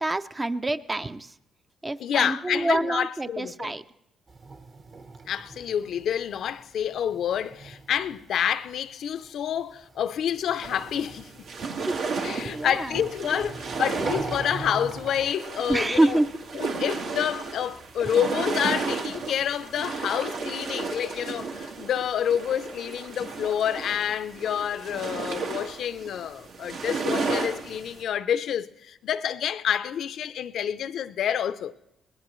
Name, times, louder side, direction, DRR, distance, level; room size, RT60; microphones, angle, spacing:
voice 1, 0.0-1.3 1.8-3.8 11.8-12.9 13.3-13.5 15.7-16.3, right 2 dB, 20° right, 0.5 m, -27 dB
voice 2, 2.0-3.8 5.3-11.3 12.2-16.2 16.5-31.8, left 9 dB, 70° left, 0.5 m, -28 dB
sound 1, 4.3-8.8 9.1-15.3, right 3 dB, 40° right, 1.1 m, -40 dB
sound 2, 10.6-28.0, right 4 dB, 80° right, 1.7 m, -33 dB
22.0 x 19.0 x 3.1 m
cardioid pair, 90°, 0 cm